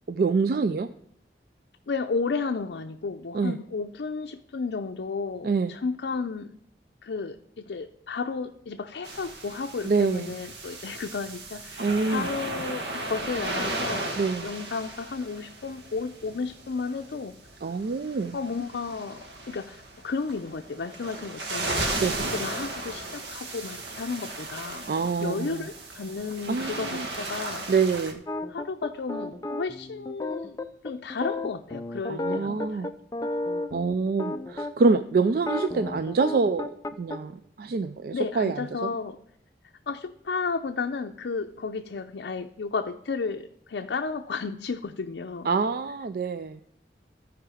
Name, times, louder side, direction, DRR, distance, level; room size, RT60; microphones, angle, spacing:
voice 1, 0.1-0.9 3.3-3.6 5.4-5.7 9.8-10.3 11.8-12.3 14.2-14.5 17.6-18.4 22.0-22.2 24.9-25.7 26.5-27.1 27.7-28.2 32.1-32.9 33.7-36.7 37.0-38.8 45.4-46.6, right 4 dB, 55° right, 11 dB, 0.3 m, -26 dB
voice 2, 1.9-6.5 7.0-14.1 14.4-17.3 18.3-22.0 22.3-24.9 25.2-27.6 28.5-30.6 30.8-32.9 38.1-39.2 39.9-45.5, left 4 dB, 80° left, 4 dB, 0.5 m, -33 dB
sound 1, 9.0-28.1, right 2 dB, 90° right, 1.4 m, -35 dB
sound 2, 28.3-34.9 35.4-37.2, left 2 dB, 20° left, 0.4 m, -33 dB
14.5 x 4.8 x 4.9 m, 0.68 s
head